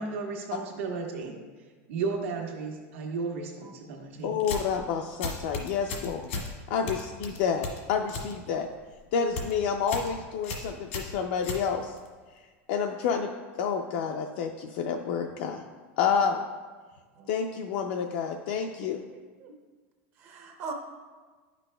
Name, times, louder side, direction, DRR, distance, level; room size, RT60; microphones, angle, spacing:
voice 1, 0.0-1.4 1.9-4.4, right 4 dB, 90° right, 1 dB, 1.3 m, -34 dB
voice 2, 4.2-6.3 6.7-8.7 9.1-11.9 12.7-13.3 13.6-15.6 16.0-16.4 17.3-19.0, left 6 dB, 55° left, 3 dB, 0.4 m, -29 dB
sound 1, 4.4-4.8 5.2-6.5 6.9-8.3 8.6-9.0 9.2-9.5 9.9-10.1 10.4-12.1, left 4 dB, 80° left, 1.3 m, -35 dB
voice 3, 19.1-19.5 20.2-20.7, right 5 dB, 35° right, 3 dB, 0.6 m, -41 dB
9.9 x 6.1 x 2.2 m, 1.4 s
supercardioid pair, 170°, 7 cm